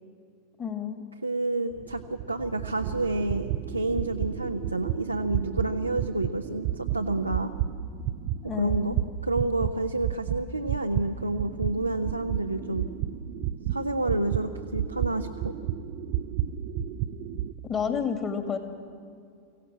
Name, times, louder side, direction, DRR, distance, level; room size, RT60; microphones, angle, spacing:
voice 1, 0.6-1.0 8.4-9.0 17.6-18.6, left 7 dB, 25° left, 7 dB, 2.2 m, -30 dB
voice 2, 1.2-7.5 8.6-8.9 9.2-12.8 13.7-15.5, right 2 dB, 85° right, 4 dB, 0.7 m, -29 dB
sound 1, 1.7-9.7 10.0-17.5, right 11 dB, 45° right, 0.6 m, -32 dB
24.0 x 16.5 x 7.6 m, 2.4 s
figure-of-eight pair, 90°, 0 cm